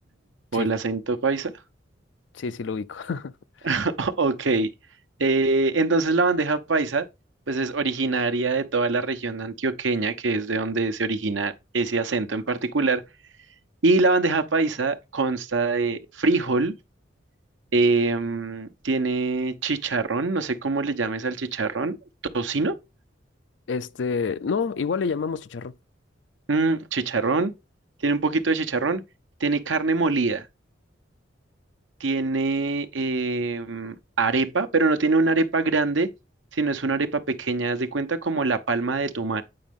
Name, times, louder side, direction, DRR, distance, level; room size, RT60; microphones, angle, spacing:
voice 1, 0.5-1.5 3.6-4.7 5.2-7.1 7.5-13.0 13.8-16.7 17.7-22.0 22.3-22.8 26.5-27.5 28.0-29.0 29.4-30.5 32.0-36.1 36.5-39.4, right 3 dB, 85° right, 0.9 m, -24 dB
voice 2, 2.3-3.7 23.7-25.7, left 5 dB, 70° left, 0.4 m, -28 dB
8.7 x 5.2 x 3.7 m
head